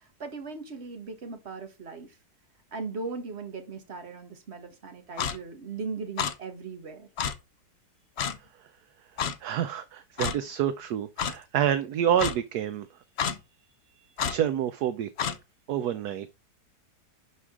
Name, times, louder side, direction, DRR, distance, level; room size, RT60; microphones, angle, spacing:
voice 1, 0.2-2.1 2.7-7.1, right 4 dB, 40° right, 1.6 m, -38 dB
Clock, 5.2-5.4 6.2-6.3 7.2-7.3 8.2-8.4 9.2-9.3 10.2-10.4 11.2-11.3 12.2-12.3 13.2-13.4 14.2-14.4 15.2-15.4, left 7 dB, 55° left, 0.7 m, -28 dB
voice 2, 9.2-12.9 14.2-15.3 15.7-16.3, right 10 dB, 70° right, 1.1 m, -28 dB
11.0 x 4.9 x 3.7 m
omnidirectional pair, 1.9 m